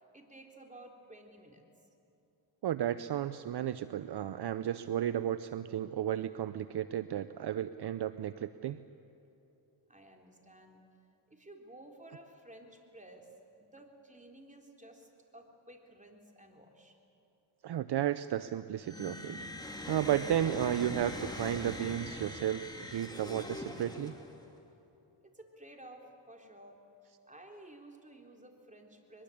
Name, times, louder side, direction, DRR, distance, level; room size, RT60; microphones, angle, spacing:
voice 1, 0.0-1.6 9.9-10.8 11.3-13.3 13.6-17.0 23.9-24.3 25.2-29.2, right 1 dB, 15° right, 2 dB, 3.8 m, -54 dB
voice 2, 2.6-8.8 17.6-19.4 19.9-24.1, right 11 dB, 60° right, 13 dB, 0.7 m, -33 dB
sound 1, 18.8-24.5, left 1 dB, 10° left, 3.2 m, -42 dB
22.5 x 22.5 x 8.6 m, 2.8 s
cardioid pair, 70°, 46 cm